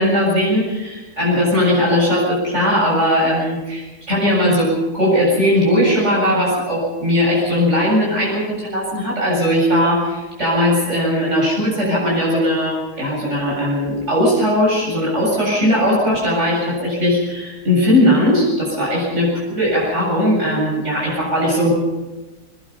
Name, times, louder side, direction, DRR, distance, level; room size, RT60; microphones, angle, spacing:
voice 1, 0.0-21.7, equal, 45° right, -5 dB, 8.0 m, -18 dB
22.5 x 21.5 x 5.6 m, 1.1 s
omnidirectional pair, 1.7 m